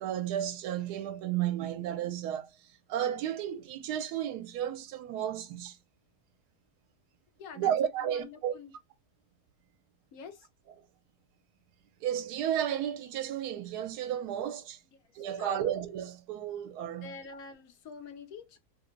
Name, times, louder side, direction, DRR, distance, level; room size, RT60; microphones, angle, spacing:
voice 1, 0.0-2.5 2.9-5.8 7.5-8.5 12.0-14.8 15.1-17.1, right 10 dB, 80° right, 1.1 m, -33 dB
voice 2, 7.4-7.7 8.0-8.7 10.1-10.5 15.4-15.7 17.0-18.6, left 5 dB, 70° left, 1.0 m, -46 dB
2.9 x 2.1 x 3.7 m
omnidirectional pair, 1.7 m